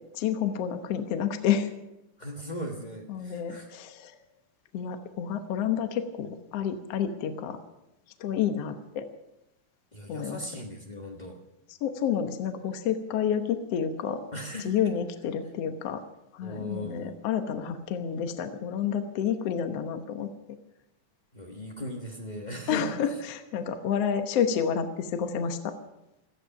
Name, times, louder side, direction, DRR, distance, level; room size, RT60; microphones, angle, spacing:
voice 1, 0.1-1.7 3.1-4.2 4.7-7.6 8.2-9.1 10.1-10.5 11.8-14.2 14.6-16.0 16.3-20.3 22.7-25.7, left 8 dB, 65° left, 7 dB, 2.0 m, -29 dB
voice 2, 2.2-3.7 9.9-11.4 14.3-14.7 16.4-17.2 21.3-23.2, equal, 40° left, 0 dB, 0.6 m, -38 dB
18.0 x 14.0 x 5.8 m, 0.92 s
omnidirectional pair, 3.4 m